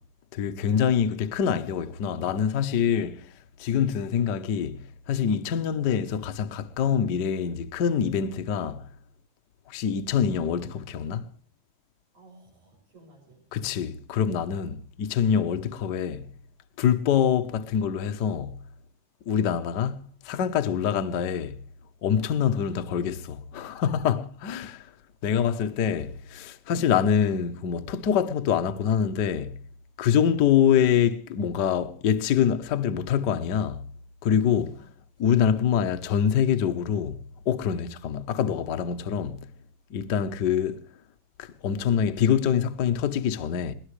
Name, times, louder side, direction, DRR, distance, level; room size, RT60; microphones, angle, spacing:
voice 1, 0.3-3.3 3.6-4.8 5.1-8.9 9.7-11.3 13.5-16.3 16.8-18.6 19.3-21.6 22.0-24.9 25.2-29.6 30.0-33.8 34.2-34.8 35.2-37.2 37.5-39.4 39.9-40.8 41.4-43.7, left 8 dB, 90° left, 0.9 m, -25 dB
voice 2, 12.1-13.5 22.5-23.1 34.8-34.9, right 1 dB, 70° right, 7.9 m, -55 dB
22.5 x 18.0 x 3.2 m
omnidirectional pair, 3.5 m